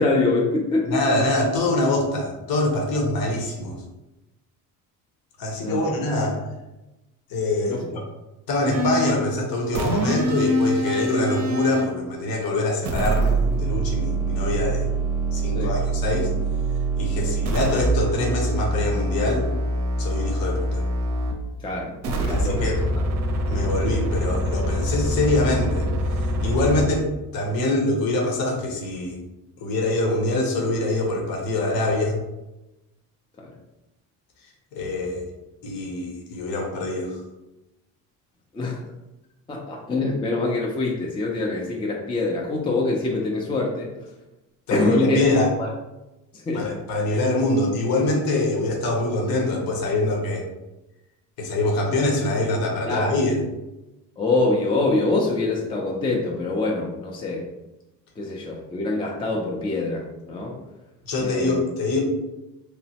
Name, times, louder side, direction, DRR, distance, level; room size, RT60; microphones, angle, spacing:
voice 1, 0.0-1.2 5.6-6.0 7.7-7.9 15.5-15.7 17.2-17.3 21.6-22.7 23.5-23.6 33.4-33.5 38.5-38.8 39.5-43.9 44.7-45.2 45.6-45.7 46.3-46.7 52.9-53.2 54.2-57.4 58.2-60.6 61.2-61.6, left 2 dB, 15° left, -1 dB, 0.3 m, -25 dB
voice 2, 0.9-3.8 5.4-6.4 7.3-8.0 8.5-14.9 15.3-16.3 17.0-19.5 20.0-20.8 22.3-22.8 23.5-25.9 26.4-27.1 27.3-29.2 29.6-32.2 34.7-35.2 35.6-37.2 44.7-45.5 46.5-50.4 51.4-53.4 61.1-62.0, left 2 dB, 70° left, 0 dB, 0.9 m, -24 dB
sound 1, 8.7-9.2 9.7-11.9 12.8-21.4 22.0-26.8, right 2 dB, 50° right, 0.5 m, -24 dB
3.0 x 2.0 x 2.8 m, 0.98 s
cardioid pair, 95°, 37 cm